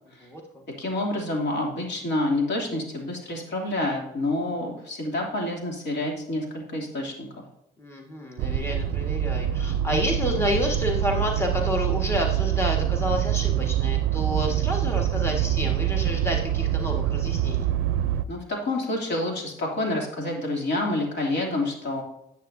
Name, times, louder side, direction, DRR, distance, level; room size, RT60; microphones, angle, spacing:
voice 1, 0.8-7.4 18.3-22.0, left 1 dB, 60° left, -1 dB, 2.8 m, -28 dB
voice 2, 7.8-17.6, left 1 dB, 15° left, 0 dB, 1.6 m, -29 dB
sound 1, 8.4-18.2, right 11 dB, 75° right, 0.4 m, -25 dB
10.0 x 8.2 x 2.7 m, 0.82 s
cardioid pair, 90°, 20 cm